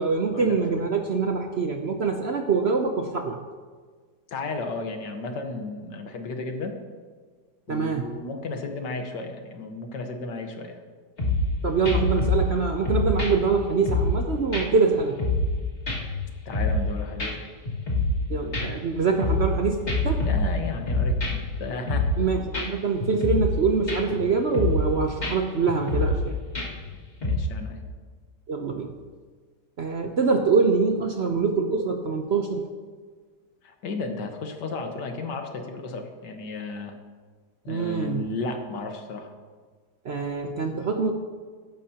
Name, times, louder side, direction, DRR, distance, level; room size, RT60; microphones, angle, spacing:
voice 1, 0.0-3.4 7.7-8.1 11.6-15.2 18.3-19.8 20.0-20.3 22.2-26.4 28.5-28.9 29.8-32.6 37.7-38.3 40.0-41.1, right 5 dB, 55° right, 4 dB, 0.8 m, -24 dB
voice 2, 4.3-6.8 7.7-10.8 16.5-17.4 20.2-22.1 27.2-27.8 33.6-37.0 37.6-39.3, left 3 dB, 80° left, 4 dB, 1.8 m, -33 dB
sound 1, 11.2-11.6 11.8-12.6 12.9-14.2 14.5-14.6 15.0-15.6 15.9-16.9 17.2-17.3 17.7-18.2 18.5-19.6 19.9-21.5 21.9-22.2 22.5-22.7 23.0-23.6 23.9-24.2 24.5-24.9 25.2-25.3 25.7-26.2 26.5-26.9 27.2-27.4, left 2 dB, 40° left, 2.4 m, -25 dB
15.5 x 11.5 x 2.9 m, 1.5 s
omnidirectional pair, 1.8 m